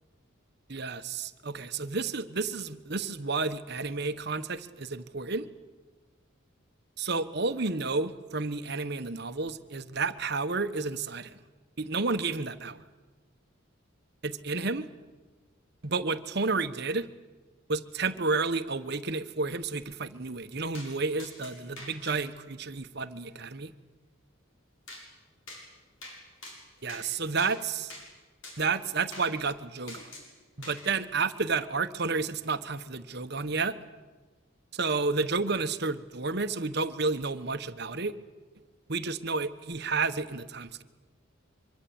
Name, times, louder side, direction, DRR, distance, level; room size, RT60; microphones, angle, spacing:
voice 1, 0.7-5.4 7.0-11.4 11.8-12.8 14.2-14.8 15.8-17.1 17.7-23.7 26.8-27.9 28.6-30.0 30.6-33.8 34.7-38.1 38.9-40.8, right 4 dB, 50° right, 10 dB, 1.2 m, -31 dB
sound 1, 20.7-20.9 21.2-22.1 24.9-25.0 25.5-25.6 26.0-26.2 26.4-27.0 27.4-27.5 27.9-28.1 28.4-28.6 29.1-29.3 29.9-30.3 30.6-30.9, left 1 dB, 75° left, 7.5 m, -44 dB
24.0 x 24.0 x 8.8 m, 1.3 s
head